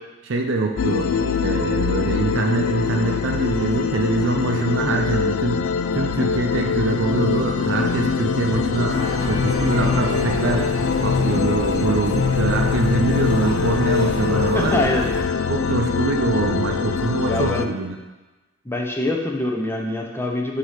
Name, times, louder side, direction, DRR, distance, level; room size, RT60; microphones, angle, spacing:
voice 1, 0.3-1.1 1.4-5.7 5.9-10.7 11.0-14.7 15.5-18.0, right 3 dB, 65° right, 3 dB, 0.5 m, -24 dB
sound 1, 0.8-17.7, left 6 dB, 85° left, 0.3 m, -23 dB
sound 2, 8.9-15.2, equal, 55° left, 1.5 m, -29 dB
voice 2, 14.5-15.0 17.2-17.7 18.7-20.6, left 1 dB, 10° left, 1 dB, 0.6 m, -24 dB
7.8 x 2.8 x 5.0 m, 1.2 s
head